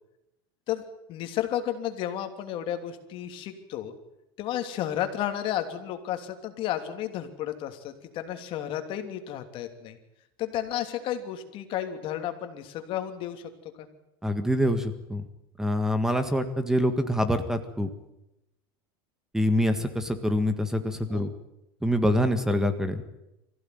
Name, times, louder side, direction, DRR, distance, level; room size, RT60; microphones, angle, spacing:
voice 1, 1.1-3.9 4.4-10.0 10.4-13.5 13.8-13.9 21.1-21.3, left 11 dB, 45° left, 6 dB, 3.0 m, -32 dB
voice 2, 14.2-15.2 15.6-17.9 19.3-21.3 21.8-23.0, equal, 5° right, 9 dB, 1.7 m, -25 dB
24.0 x 15.5 x 9.4 m, 0.89 s
supercardioid pair, 140°, 12 cm